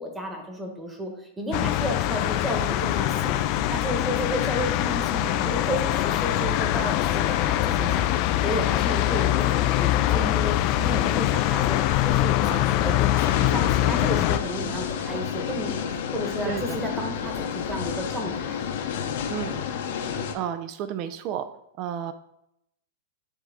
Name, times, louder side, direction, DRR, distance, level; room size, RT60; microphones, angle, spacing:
voice 1, 0.0-3.4 3.7-11.8 12.0-18.6, equal, 10° right, 1 dB, 1.3 m, -32 dB
sound 1, 1.5-14.4, left 14 dB, 45° left, 0.4 m, -23 dB
sound 2, 13.2-20.3, left 7 dB, 65° left, 0.8 m, -30 dB
voice 2, 16.4-16.8 19.3-19.6 20.3-21.5 21.8-22.1, right 10 dB, 40° right, 11 dB, 0.5 m, -31 dB
9.8 x 3.4 x 3.6 m, 0.80 s
hypercardioid pair, 140°, 0 cm